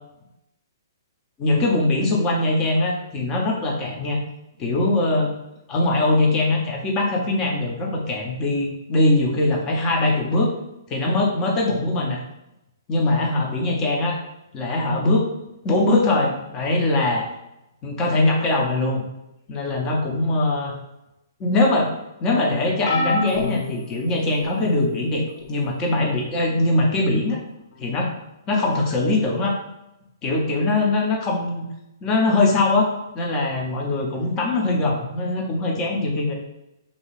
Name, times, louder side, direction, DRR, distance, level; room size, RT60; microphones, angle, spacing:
voice 1, 1.4-4.2 4.6-5.3 5.7-10.5 10.9-12.2 12.9-14.2 14.5-15.3 15.6-17.3 17.8-19.1 19.5-20.7 21.4-21.9 22.2-27.4 27.8-28.1 28.5-29.6 30.2-31.7 32.0-32.9 33.1-36.3, left 2 dB, 25° left, 0 dB, 0.7 m, -21 dB
sound 1, 22.9-24.7 25.4-25.7 26.9-27.0, left 3 dB, 60° left, 0.4 m, -28 dB
2.6 x 2.3 x 3.2 m, 0.90 s
hypercardioid pair, 130°, 2 cm